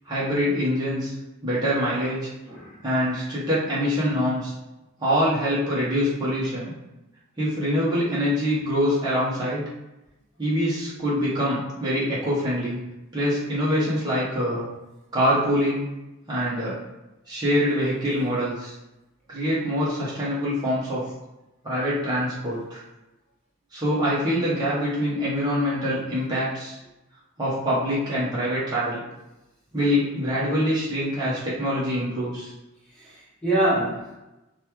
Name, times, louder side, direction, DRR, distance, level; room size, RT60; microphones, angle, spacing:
voice 1, 0.1-1.1 1.4-2.3 2.8-4.5 5.0-6.7 7.4-9.6 10.4-12.8 13.1-14.7 15.1-15.9 16.3-16.8 17.3-18.7 19.3-21.0 21.6-22.8 23.7-26.8 27.4-29.0 29.7-32.5, equal, 20° right, -9 dB, 0.9 m, -24 dB
voice 2, 2.5-2.8 33.0-34.2, right 1 dB, 5° left, -10 dB, 1.3 m, -25 dB
5.2 x 2.3 x 3.0 m, 0.98 s
head